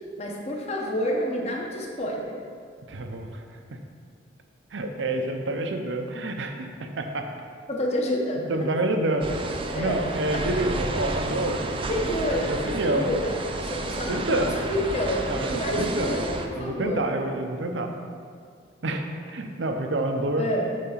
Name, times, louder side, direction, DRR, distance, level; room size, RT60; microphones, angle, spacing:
voice 1, 0.2-2.4 7.7-8.7 9.7-10.0 10.3-10.8 11.9-17.1 20.4-20.7, left 1 dB, 35° left, -1 dB, 0.9 m, -29 dB
voice 2, 2.9-3.4 4.7-7.3 8.5-9.4 9.7-11.6 12.5-13.1 13.8-14.6 15.3-16.2 16.5-17.9 18.8-20.5, right 1 dB, 70° right, 5 dB, 0.6 m, -28 dB
sound 1, 9.2-16.5, right 2 dB, 25° right, 0.4 m, -31 dB
7.4 x 3.4 x 5.7 m, 2.1 s
head